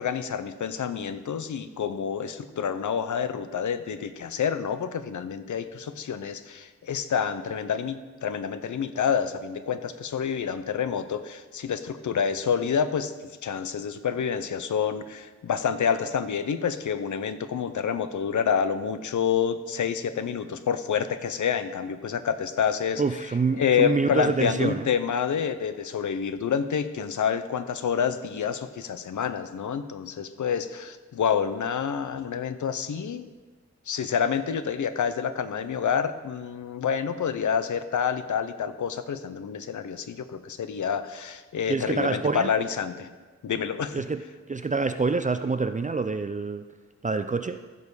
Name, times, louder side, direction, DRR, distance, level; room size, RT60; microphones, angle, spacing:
voice 1, 0.0-13.1 13.4-23.0 23.6-33.3 33.9-43.1 43.4-44.0, left 7 dB, 85° left, 10 dB, 0.7 m, -28 dB
voice 2, 23.0-24.9 41.7-42.5 43.9-44.2 44.5-46.7 47.0-47.6, right 4 dB, 25° right, 9 dB, 0.4 m, -26 dB
15.0 x 5.4 x 4.8 m, 1.3 s
wide cardioid pair, 95°, 29 cm